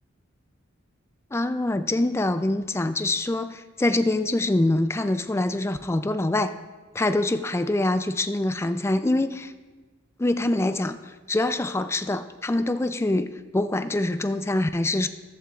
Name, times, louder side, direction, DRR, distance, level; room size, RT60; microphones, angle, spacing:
voice 1, 1.3-6.5 6.9-9.5 10.2-11.0 11.3-15.1, left 2 dB, 15° left, 10 dB, 0.3 m, -24 dB
14.0 x 11.5 x 2.4 m, 1.3 s
head